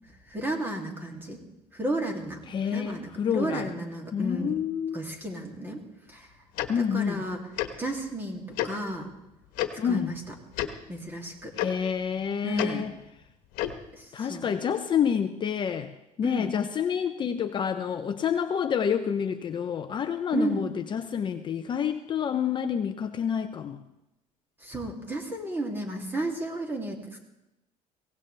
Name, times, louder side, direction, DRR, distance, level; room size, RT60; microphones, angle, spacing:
voice 1, 0.3-1.4 1.7-2.4 2.7-4.5 4.9-5.8 6.1-6.3 6.8-7.4 7.8-9.1 9.8-10.1 10.9-11.5 12.4-12.8 14.0-14.5 16.2-16.5 20.3-20.6 24.6-27.2, right 1 dB, 15° right, 1 dB, 2.7 m, -32 dB
voice 2, 2.5-3.7 4.1-5.0 6.7-7.2 9.8-10.1 11.6-12.9 14.1-15.9 16.2-23.8, left 7 dB, 35° left, 8 dB, 0.7 m, -28 dB
Tick-tock, 6.6-6.7 7.6-7.7 8.6-8.7 9.6-9.7 10.5-10.7 11.6-11.7 12.6-12.7 13.5-13.8, left 14 dB, 85° left, 1.3 m, -28 dB
23.0 x 17.5 x 3.4 m, 0.91 s
cardioid pair, 140°, 14 cm